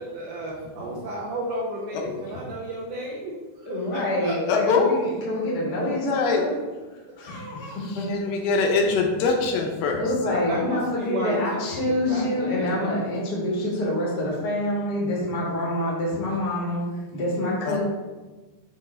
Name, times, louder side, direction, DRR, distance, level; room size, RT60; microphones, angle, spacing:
voice 1, 0.0-4.4 10.3-13.0, right 1 dB, 70° right, -6 dB, 2.2 m, -33 dB
voice 2, 3.6-6.6 7.2-8.1 10.0-16.8 17.1-17.8, left 1 dB, 60° left, -4 dB, 1.0 m, -26 dB
voice 3, 4.5-4.9 5.9-6.4 8.1-10.4 17.7-17.8, left 4 dB, 75° left, 2 dB, 2.2 m, -23 dB
7.7 x 3.1 x 4.2 m, 1.3 s
omnidirectional pair, 4.4 m